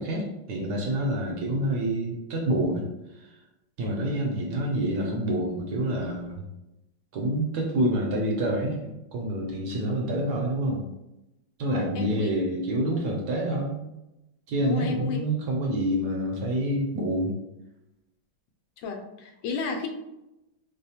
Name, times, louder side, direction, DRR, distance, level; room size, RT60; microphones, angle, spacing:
voice 1, 0.0-2.9 3.1-3.3 3.8-6.4 7.1-10.8 11.6-13.8 14.5-17.3, right 1 dB, 65° right, -1 dB, 1.1 m, -27 dB
voice 2, 11.6-12.3 14.6-15.2 18.8-19.9, left 5 dB, 80° left, 4 dB, 1.2 m, -33 dB
3.2 x 2.0 x 4.2 m, 0.92 s
omnidirectional pair, 2.1 m